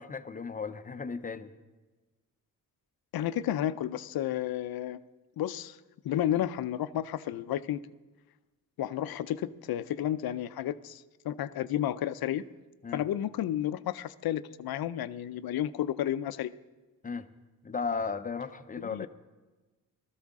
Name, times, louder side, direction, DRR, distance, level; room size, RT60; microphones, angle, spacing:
voice 1, 0.0-1.5 12.8-13.0 17.0-17.3 17.6-19.1, left 5 dB, 25° left, 10 dB, 0.5 m, -35 dB
voice 2, 3.1-5.0 5.4-5.8 6.0-7.8 8.8-12.4 12.9-16.5 18.8-19.1, left 11 dB, 85° left, 14 dB, 0.6 m, -32 dB
18.5 x 13.5 x 3.6 m, 1.2 s
wide cardioid pair, 135°, 35 cm